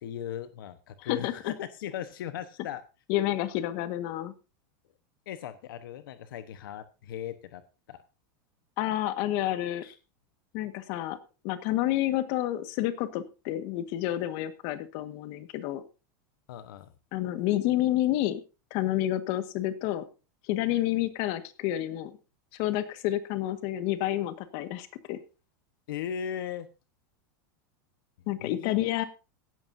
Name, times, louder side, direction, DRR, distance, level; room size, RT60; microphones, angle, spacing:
voice 1, 0.0-2.8 5.3-7.6 7.9-8.0 9.8-10.0 16.5-16.9 25.9-26.7 28.4-29.0, left 9 dB, 80° left, 11 dB, 1.1 m, -38 dB
voice 2, 1.0-1.5 3.1-4.3 8.8-9.8 10.5-11.2 11.4-15.8 17.1-18.4 18.7-20.0 20.5-22.1 22.5-25.2 28.3-29.0, left 14 dB, 50° left, 10 dB, 1.6 m, -29 dB
16.5 x 12.5 x 2.7 m, 0.31 s
supercardioid pair, 155°, 11 cm